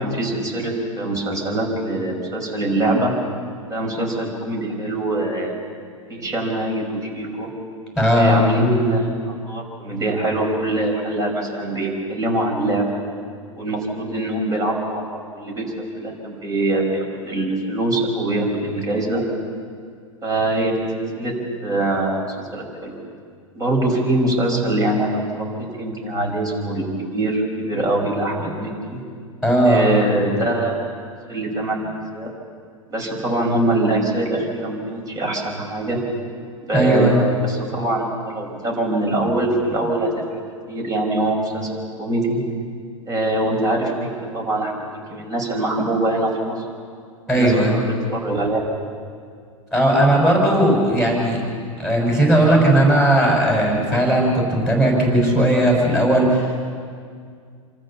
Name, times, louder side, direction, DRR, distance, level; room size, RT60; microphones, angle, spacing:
voice 1, 0.0-3.1 3.7-5.7 6.1-7.5 8.1-12.9 13.6-15.7 16.0-19.2 20.2-20.7 21.2-21.3 21.6-23.0 23.6-29.0 29.6-30.8 31.3-31.8 32.1-32.3 32.9-36.0 36.6-40.4 40.7-41.7 42.0-42.4 43.1-44.8 45.1-46.6 47.3-47.5 48.1-48.6, right 1 dB, 20° right, 0 dB, 5.8 m, -23 dB
voice 2, 8.0-8.4 29.4-29.8 36.7-37.2 47.3-47.8 49.7-51.4 51.8-56.6, right 1 dB, 5° right, -2 dB, 5.9 m, -17 dB
27.5 x 14.0 x 7.1 m, 2.1 s
figure-of-eight pair, 95°, 18 cm